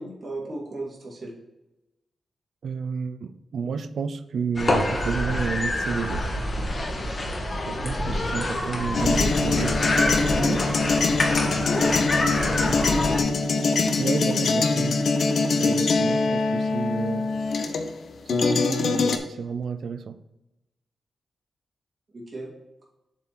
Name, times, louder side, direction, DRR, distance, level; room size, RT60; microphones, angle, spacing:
voice 1, 0.0-1.3 9.1-9.6 12.4-13.2 22.1-22.5, right 1 dB, 45° right, -4 dB, 2.8 m, -35 dB
voice 2, 2.6-6.2 7.7-9.8 10.4-10.6 14.0-15.0 15.6-17.3 18.3-20.2, right 6 dB, 75° right, 11 dB, 0.5 m, -31 dB
sound 1, 4.6-13.2, left 1 dB, 40° left, 1.6 m, -26 dB
sound 2, 8.9-18.0 18.3-19.2, left 4 dB, 70° left, 0.7 m, -23 dB
7.4 x 3.7 x 5.9 m, 0.96 s
cardioid pair, 85°, 0 cm